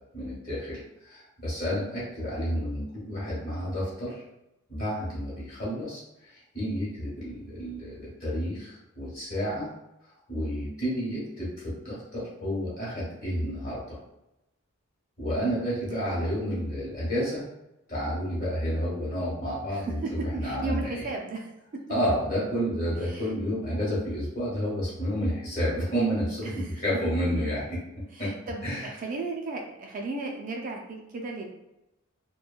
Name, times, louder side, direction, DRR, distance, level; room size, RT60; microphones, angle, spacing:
voice 1, 0.1-4.2 4.7-9.7 10.0-14.0 15.2-17.4 17.9-21.1 21.9-27.8 28.2-28.3 28.6-29.0, equal, 40° left, -8 dB, 1.3 m, -30 dB
voice 2, 20.4-21.5 23.0-23.3 28.1-31.5, right 3 dB, 40° right, 1 dB, 0.3 m, -35 dB
2.9 x 2.2 x 2.4 m, 0.90 s
head